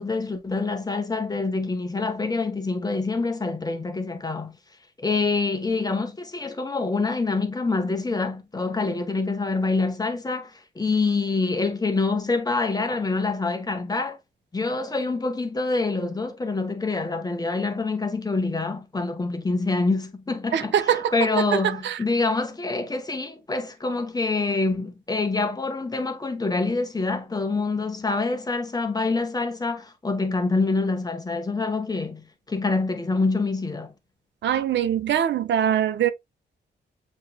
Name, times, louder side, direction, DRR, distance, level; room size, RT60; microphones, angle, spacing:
voice 1, 0.0-4.6 5.0-14.2 14.5-33.9, left 3 dB, 20° left, 1.0 m, -26 dB
voice 2, 20.5-21.1 21.8-22.0 34.4-36.1, right 9 dB, 85° right, 0.6 m, -22 dB
7.3 x 3.1 x 2.2 m
cardioid pair, 95°, 18 cm